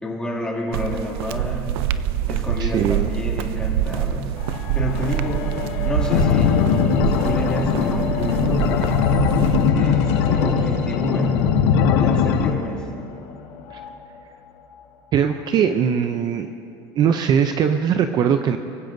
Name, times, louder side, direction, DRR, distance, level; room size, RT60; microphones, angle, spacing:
voice 1, 0.0-1.7 2.3-4.3 4.7-5.5 5.8-6.7 7.1-9.0 9.6-11.5 12.0-12.9, left 1 dB, 5° left, -3 dB, 2.4 m, -29 dB
sound 1, 0.7-9.7, right 10 dB, 80° right, 0.6 m, -25 dB
voice 2, 2.6-3.1 13.7-13.8 15.1-16.5 17.0-18.6, right 8 dB, 35° right, 8 dB, 0.5 m, -20 dB
sound 2, 4.4-13.9 14.7-14.8, left 7 dB, 55° left, 1.2 m, -29 dB
sound 3, 6.1-12.5, left 7 dB, 75° left, 1.1 m, -20 dB
24.0 x 15.5 x 2.6 m, 2.7 s
supercardioid pair, 140°, 13 cm